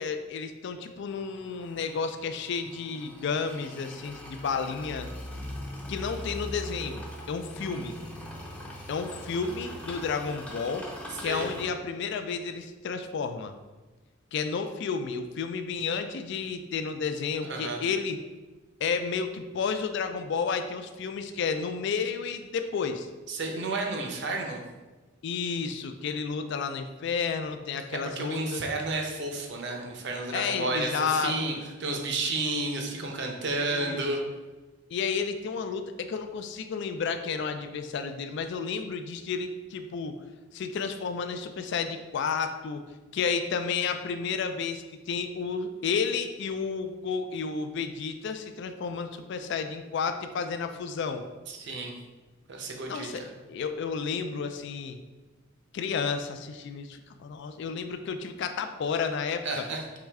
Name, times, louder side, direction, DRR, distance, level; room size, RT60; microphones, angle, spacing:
voice 1, 0.0-5.1 5.9-7.9 8.9-10.9 11.2-13.5 14.3-18.2 18.8-23.1 25.2-28.6 30.3-31.6 33.7-34.0 34.9-40.2 40.5-42.8 43.1-51.2 52.9-53.2 53.5-55.0 55.7-59.6, left 5 dB, 60° left, 7 dB, 0.3 m, -31 dB
sound 1, 1.1-11.7, equal, 5° left, 0.5 m, -41 dB
voice 2, 17.4-17.8 23.3-24.6 27.9-31.5 31.8-34.2 51.5-51.9 52.5-53.1 59.4-59.9, right 2 dB, 60° right, 2 dB, 0.7 m, -31 dB
4.9 x 3.1 x 3.4 m, 1.2 s
head